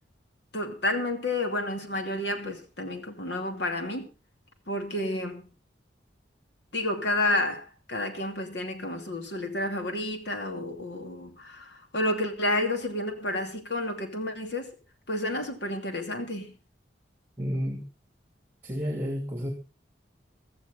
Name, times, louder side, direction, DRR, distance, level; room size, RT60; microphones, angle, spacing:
voice 1, 0.5-4.1 4.7-5.4 6.7-14.7 15.1-16.5, left 1 dB, 70° left, 2.7 m, -30 dB
voice 2, 17.4-17.9 18.6-19.5, equal, 10° right, 2.9 m, -31 dB
15.5 x 14.0 x 3.8 m
head